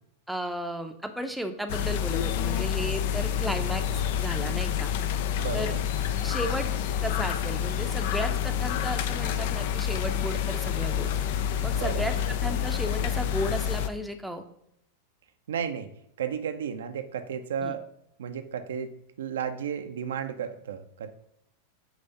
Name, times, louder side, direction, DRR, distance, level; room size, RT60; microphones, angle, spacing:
voice 1, 0.3-4.9 5.5-5.7 6.2-6.7 7.0-11.1 11.6-14.4 17.6-17.7, equal, ahead, 6 dB, 0.7 m, -34 dB
sound 1, 1.7-13.9, left 9 dB, 50° left, 0.5 m, -28 dB
voice 2, 5.4-5.8 11.7-12.1 15.5-15.9 16.2-17.9 18.2-18.9 19.2-21.1, right 7 dB, 65° right, 8 dB, 0.6 m, -33 dB
9.0 x 3.4 x 5.5 m, 0.76 s
figure-of-eight pair, 90°, 0 cm